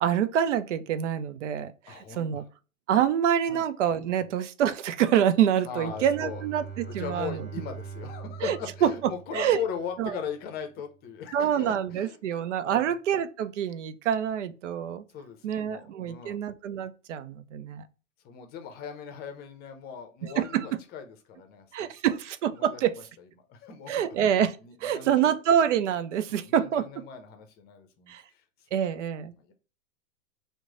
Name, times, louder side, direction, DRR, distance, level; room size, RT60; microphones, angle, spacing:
voice 1, 0.0-2.4 2.9-7.5 8.4-8.9 9.3-9.6 10.0-10.2 11.3-15.0 15.4-17.8 20.4-20.7 21.7-22.9 23.9-27.0 28.1-28.2 28.7-29.3, right 9 dB, 65° right, 0.5 m, -26 dB
voice 2, 1.9-2.4 3.5-3.7 4.2-4.3 5.6-6.4 6.9-12.9 15.1-16.4 18.2-21.9 22.6-23.0 23.5-24.1 24.6-25.3 26.3-28.4 28.7-28.8 29.3-29.5, left 7 dB, 25° left, 0.6 m, -39 dB
Bowed string instrument, 5.6-10.1, right 6 dB, 20° right, 1.0 m, -42 dB
3.0 x 2.1 x 3.7 m
hypercardioid pair, 115°, 39 cm